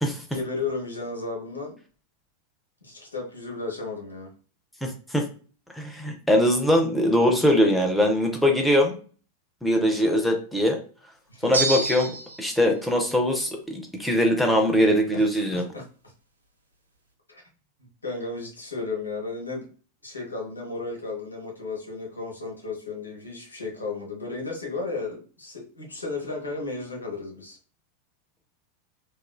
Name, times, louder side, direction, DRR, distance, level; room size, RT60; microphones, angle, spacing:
voice 1, 0.3-1.8 2.8-4.3 11.3-11.6 15.1-15.2 15.5-15.8 17.3-17.4 18.0-19.6 20.0-27.6, left 3 dB, 80° left, -1 dB, 0.9 m, -34 dB
voice 2, 4.8-5.2 5.7-9.0 9.6-10.8 11.4-12.1 12.4-15.6, equal, ahead, 2 dB, 0.5 m, -22 dB
sound 1, 11.5-12.5, right 3 dB, 80° right, 0.5 m, -27 dB
3.0 x 2.3 x 2.3 m, 0.39 s
figure-of-eight pair, 90°, 0 cm